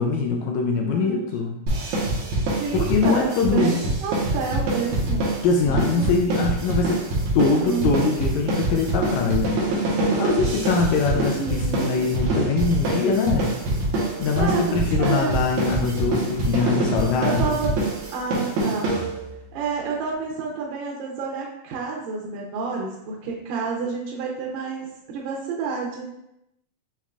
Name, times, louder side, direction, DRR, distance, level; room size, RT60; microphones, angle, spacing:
voice 1, 0.0-1.6 2.7-3.8 5.4-7.0 7.3-9.5 10.2-13.5 14.2-17.5, left 4 dB, 80° left, 1 dB, 1.7 m, -23 dB
voice 2, 0.9-1.3 2.6-5.3 5.7-6.1 7.4-7.9 11.1-11.9 14.4-15.3 17.2-17.7 18.1-19.0 19.5-26.1, right 5 dB, 90° right, -2 dB, 2.4 m, -29 dB
sound 1, 1.7-19.4, right 2 dB, 70° right, 2.2 m, -25 dB
7.1 x 3.0 x 2.4 m, 0.82 s
omnidirectional pair, 3.7 m